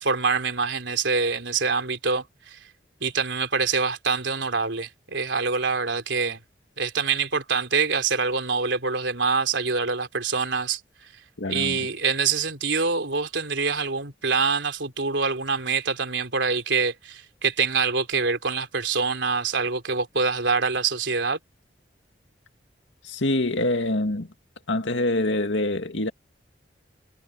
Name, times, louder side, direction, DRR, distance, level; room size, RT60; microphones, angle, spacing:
voice 1, 0.0-2.6 3.0-6.4 6.8-10.8 11.5-21.4, right 4 dB, 90° right, 3.6 m, -25 dB
voice 2, 11.4-11.8 23.0-24.3 24.7-26.1, left 2 dB, 90° left, 2.2 m, -25 dB
head